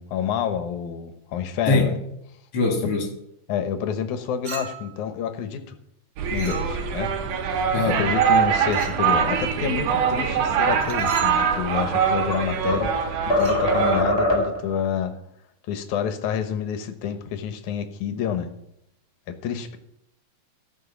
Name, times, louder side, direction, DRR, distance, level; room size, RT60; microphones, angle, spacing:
voice 1, 0.0-2.0 3.5-5.8 6.3-7.1 7.8-12.9 13.3-15.2 15.7-18.5 19.3-19.8, left 8 dB, 75° left, 9 dB, 2.4 m, -28 dB
voice 2, 2.5-3.1 7.7-8.0, left 3 dB, 50° left, 3 dB, 3.0 m, -22 dB
Chink clink, 4.4-5.0 6.3-7.0 8.7-9.1 10.8-11.4 13.3-13.7, right 4 dB, 45° right, 1.8 m, -38 dB
sound 1, 6.2-14.0, right 7 dB, 75° right, 2.5 m, -23 dB
sound 2, 11.6-12.9 13.3-14.7, left 1 dB, 25° left, 1.8 m, -23 dB
14.0 x 5.8 x 7.1 m, 0.78 s
omnidirectional pair, 3.6 m